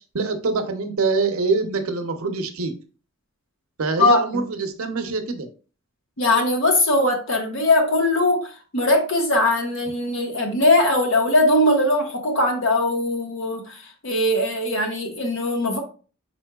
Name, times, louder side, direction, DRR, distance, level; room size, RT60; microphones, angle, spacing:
voice 1, 0.1-2.7 3.8-5.5, right 4 dB, 80° right, 6 dB, 0.7 m, -24 dB
voice 2, 4.0-4.5 6.2-15.8, left 1 dB, 60° left, 2 dB, 1.1 m, -20 dB
4.4 x 4.3 x 2.3 m, 0.37 s
head